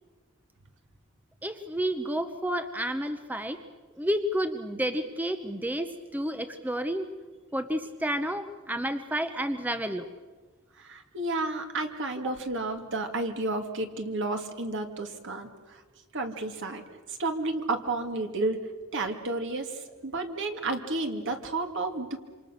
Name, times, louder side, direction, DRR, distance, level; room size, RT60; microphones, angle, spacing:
voice 1, 1.4-3.6 4.0-7.1 7.5-10.1, equal, 10° right, 8 dB, 0.8 m, -30 dB
voice 2, 10.8-15.8 16.1-16.8 17.1-18.6 18.9-22.2, right 2 dB, 60° right, 5 dB, 2.3 m, -31 dB
27.5 x 26.5 x 6.5 m, 1.4 s
head